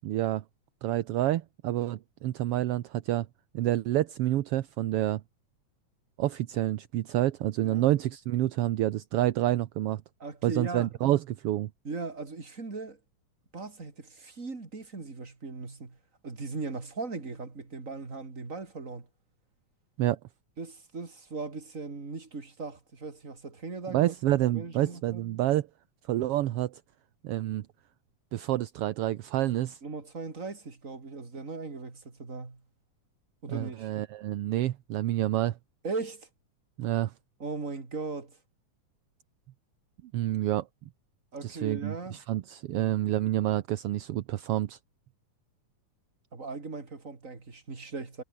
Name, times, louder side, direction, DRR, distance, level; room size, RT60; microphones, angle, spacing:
voice 1, 0.0-0.4 0.8-3.3 3.5-5.2 6.2-10.0 10.4-11.7 20.0-20.2 23.9-25.7 26.1-26.8 27.2-27.7 28.3-29.8 33.5-35.6 36.8-37.1 40.1-40.7 41.4-44.8, right 14 dB, 65° right, 1.5 m, -28 dB
voice 2, 10.2-10.9 11.8-13.0 13.5-16.0 16.2-19.1 20.6-25.2 29.8-32.6 33.4-33.9 35.8-36.3 37.4-38.4 41.3-42.2 46.3-48.2, right 3 dB, 25° right, 3.6 m, -38 dB
omnidirectional pair, 3.4 m